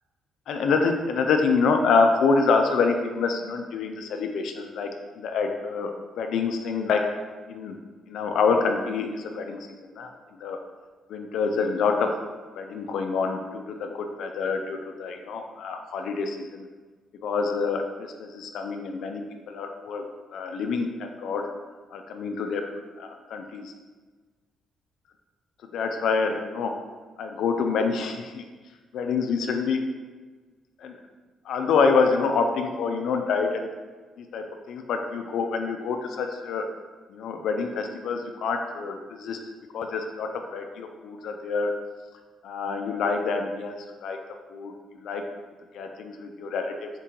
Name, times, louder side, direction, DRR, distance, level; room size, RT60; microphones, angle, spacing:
voice 1, 0.5-4.9 5.2-5.9 6.2-7.0 7.5-7.8 8.1-10.6 11.1-12.2 12.6-16.7 17.2-20.0 20.3-21.5 21.9-22.6 23.0-23.7 25.7-26.8 27.2-28.4 28.9-29.8 30.8-31.0 31.5-33.7 34.2-36.7 37.1-39.4 39.7-41.7 42.4-44.2 44.5-44.7 45.0-45.2 45.7-46.9, left 4 dB, 75° left, 4 dB, 0.3 m, -26 dB
4.4 x 2.8 x 3.7 m, 1.4 s
cardioid pair, 90°, 0 cm